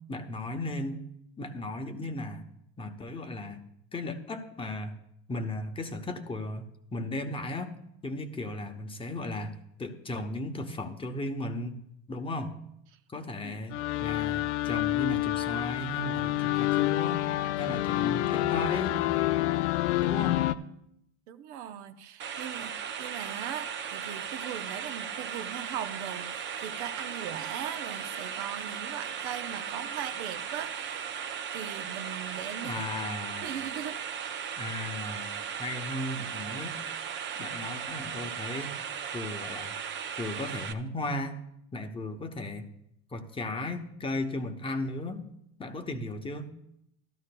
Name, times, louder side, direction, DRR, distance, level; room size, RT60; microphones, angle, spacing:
voice 1, 0.1-1.1 1.4-2.4 2.8-3.6 3.9-5.0 5.3-6.7 6.9-7.7 8.0-11.8 12.1-12.5 13.1-17.2 17.6-19.0 20.0-20.4 32.6-33.5 34.6-35.3 35.6-36.8 37.4-38.8 39.1-39.7 40.2-41.4 41.7-42.7 43.1-45.2 45.6-46.5, left 2 dB, 15° left, 5 dB, 0.8 m, -35 dB
sound 1, 13.7-20.5, left 15 dB, 90° left, 0.6 m, -28 dB
voice 2, 21.3-22.7 23.0-31.1 31.5-32.9 33.4-34.0, right 9 dB, 75° right, 9 dB, 0.9 m, -39 dB
sound 2, 22.2-40.7, right 8 dB, 35° right, 0.7 m, -37 dB
14.5 x 12.5 x 2.2 m, 0.75 s
supercardioid pair, 130°, 34 cm